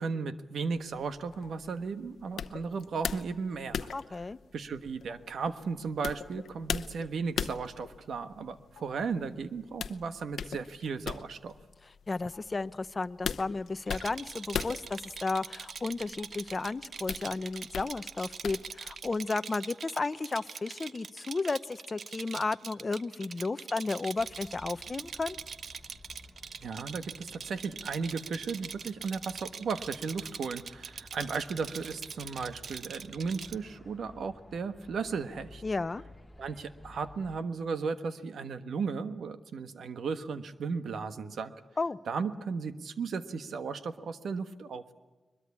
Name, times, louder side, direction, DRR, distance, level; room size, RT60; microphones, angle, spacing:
voice 1, 0.0-3.9 4.5-11.6 26.6-35.6 36.4-41.5 42.1-44.9, right 5 dB, 80° right, 10 dB, 1.4 m, -35 dB
sound 1, 0.7-19.2, left 7 dB, 90° left, 0.8 m, -40 dB
voice 2, 3.9-4.4 12.1-25.4 35.6-36.0 41.8-42.0, left 3 dB, 30° left, 13 dB, 0.7 m, -33 dB
Rattle, 13.9-33.6, right 6 dB, 60° right, 0.7 m, -43 dB
sound 2, 24.2-37.4, left 1 dB, 5° left, 3.0 m, -55 dB
22.0 x 22.0 x 8.5 m, 1.2 s
wide cardioid pair, 135°, 0 cm